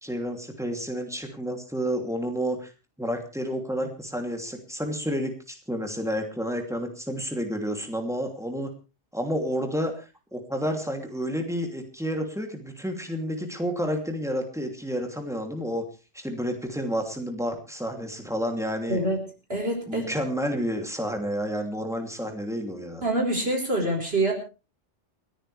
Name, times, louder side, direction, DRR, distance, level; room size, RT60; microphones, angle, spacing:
voice 1, 0.0-2.7 3.0-8.7 9.1-10.0 10.3-15.8 16.1-19.0 19.9-23.0, equal, 5° right, 3 dB, 2.8 m, -30 dB
voice 2, 19.5-20.0 23.0-24.3, right 1 dB, 60° right, 1 dB, 4.6 m, -25 dB
30.0 x 10.0 x 3.4 m, 0.32 s
omnidirectional pair, 1.2 m